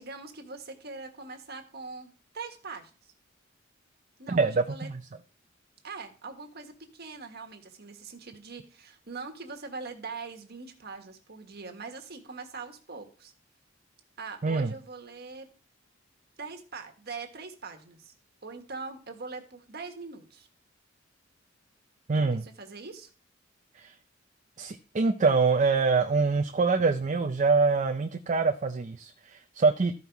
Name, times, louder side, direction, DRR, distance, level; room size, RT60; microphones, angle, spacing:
voice 1, 0.0-3.1 4.2-4.9 5.8-13.3 14.2-15.5 16.4-18.1 18.4-20.5 22.1-23.1, right 4 dB, 55° right, 5 dB, 1.5 m, -42 dB
voice 2, 4.3-5.0 14.4-14.7 22.1-22.4 23.8-23.9 24.6-29.9, right 4 dB, 40° right, 6 dB, 0.5 m, -25 dB
13.5 x 5.5 x 4.6 m, 0.38 s
head